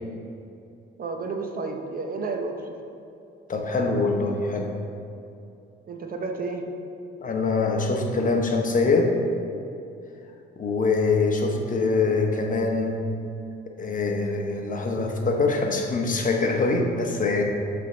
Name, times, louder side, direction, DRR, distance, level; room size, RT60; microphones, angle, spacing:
voice 1, 1.0-2.8 5.9-6.7, right 3 dB, 45° right, 3 dB, 0.7 m, -31 dB
voice 2, 3.5-4.7 7.2-9.1 10.6-13.0 13.8-17.4, left 3 dB, 40° left, 2 dB, 0.9 m, -24 dB
7.5 x 3.4 x 5.0 m, 2.7 s
cardioid pair, 90°, 20 cm